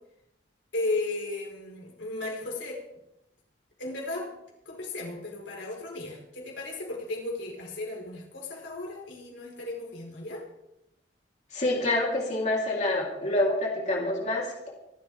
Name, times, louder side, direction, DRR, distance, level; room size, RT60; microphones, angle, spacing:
voice 1, 0.7-2.8 3.8-4.4 4.6-10.4, left 2 dB, 90° left, -1 dB, 4.9 m, -35 dB
voice 2, 11.5-14.7, left 1 dB, 40° left, -2 dB, 3.6 m, -27 dB
26.0 x 12.5 x 3.6 m, 0.86 s
head